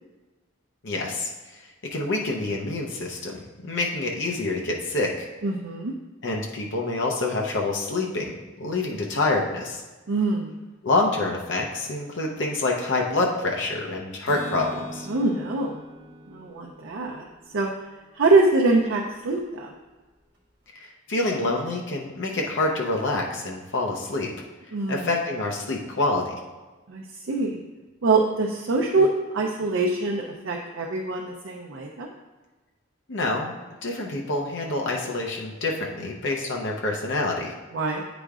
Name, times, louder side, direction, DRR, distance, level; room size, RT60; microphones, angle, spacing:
voice 1, 0.8-1.3 1.9-5.3 6.2-8.3 8.6-9.8 10.8-15.1 20.7-24.3 24.9-26.3 33.1-33.6 33.8-37.5, left 2 dB, 65° left, 0 dB, 0.7 m, -27 dB
voice 2, 5.4-5.9 10.1-10.5 15.1-15.8 16.3-17.3 17.5-17.7 18.1-19.7 24.7-25.1 26.9-27.6 28.0-32.1 37.7-38.0, right 3 dB, 75° right, 0 dB, 0.6 m, -24 dB
Acoustic guitar, 14.3-17.9, right 1 dB, 55° right, 1.3 m, -41 dB
9.0 x 5.0 x 2.4 m, 1.2 s
head